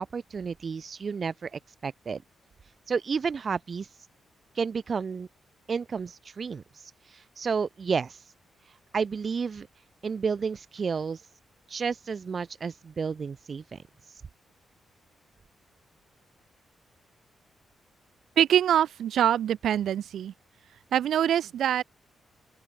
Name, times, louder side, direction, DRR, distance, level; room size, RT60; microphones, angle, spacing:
voice 1, 0.0-2.2 2.9-3.9 4.6-5.3 5.7-6.6 7.4-8.2 8.9-9.7 10.0-11.2 11.7-13.8, right 5 dB, 35° right, 0.8 m, -31 dB
voice 2, 18.4-20.3 20.9-21.8, right 10 dB, 75° right, 0.8 m, -24 dB
open air
wide cardioid pair, 165°, 0 cm